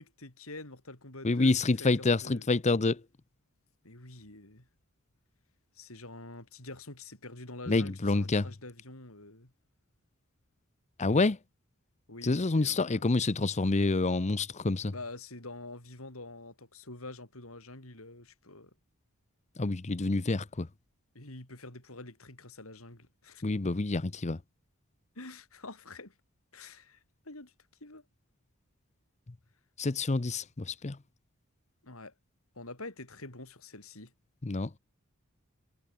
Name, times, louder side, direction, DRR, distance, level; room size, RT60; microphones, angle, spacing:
voice 1, 0.0-1.5 1.8-2.5 3.8-4.7 5.7-9.5 12.1-13.0 14.9-18.7 21.1-23.4 25.2-26.1 26.5-27.0 27.2-27.5 27.8-28.0 31.8-32.1 32.6-34.1, left 2 dB, 70° left, 5.6 m, -46 dB
voice 2, 1.2-3.0 7.7-8.4 11.0-11.4 12.2-14.9 19.6-20.7 23.4-24.4 29.8-31.0 34.4-34.7, left 3 dB, 30° left, 0.7 m, -27 dB
head